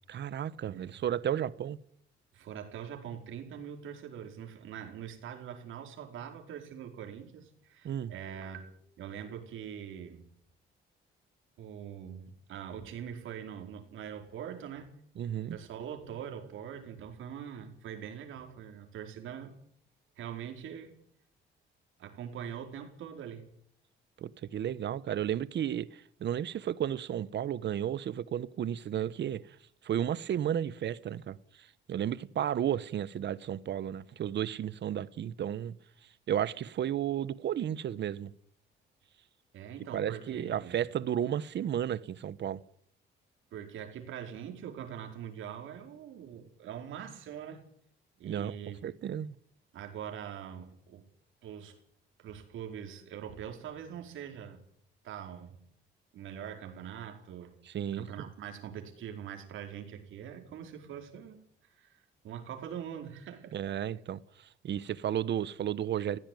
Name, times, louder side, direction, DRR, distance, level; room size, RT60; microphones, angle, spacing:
voice 1, 0.1-1.8 7.8-8.1 15.2-15.6 24.2-29.6 29.8-35.8 36.3-38.3 39.9-42.6 48.2-48.6 48.8-49.3 57.7-58.1 63.5-66.2, right 10 dB, 60° right, 1.1 m, -33 dB
voice 2, 0.6-0.9 2.3-10.2 11.6-15.0 15.5-19.6 20.2-20.9 22.0-23.4 39.5-40.8 43.5-47.6 48.2-48.8 49.7-51.0 51.4-51.8 52.2-54.6 55.0-55.6 56.1-57.5 57.9-63.6, right 8 dB, 80° right, 4.6 m, -43 dB
20.0 x 15.5 x 9.4 m
cardioid pair, 90°, 20 cm